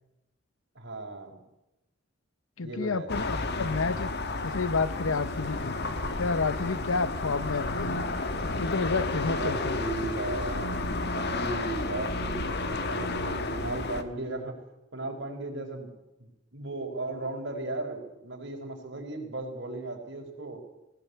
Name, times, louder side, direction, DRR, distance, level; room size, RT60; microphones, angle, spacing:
voice 1, 0.7-1.4 2.6-3.1 6.9-7.1 9.3-14.6 14.9-15.9 16.2-20.6, right 2 dB, 60° right, 1 dB, 4.8 m, -36 dB
voice 2, 2.6-4.1 4.4-5.8 6.2-8.0 8.4-9.8, left 4 dB, 85° left, 16 dB, 0.9 m, -30 dB
sound 1, 3.1-14.0, left 2 dB, 55° left, 1.5 m, -31 dB
19.5 x 16.5 x 8.3 m, 0.92 s
head